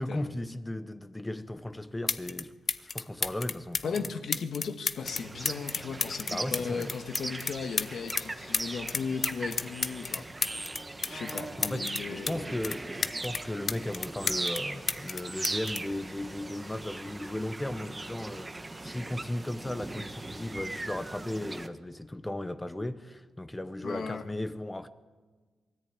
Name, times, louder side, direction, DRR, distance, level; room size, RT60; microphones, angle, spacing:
voice 1, 0.0-4.1 6.3-7.0 11.6-18.5 18.8-24.9, left 1 dB, 10° left, 0.9 m, -36 dB
sound 1, 1.6-1.7 2.1-2.4 2.7-8.3 8.5-12.3 12.6-14.6 14.9-16.7 17.6-17.9, left 5 dB, 40° left, 0.8 m, -32 dB
voice 2, 3.8-10.3 11.1-12.5 23.8-24.2, left 5 dB, 60° left, 1.6 m, -36 dB
sound 2, 5.0-21.7, right 2 dB, 20° right, 1.2 m, -39 dB
22.5 x 14.0 x 8.7 m
cardioid pair, 110°, 0 cm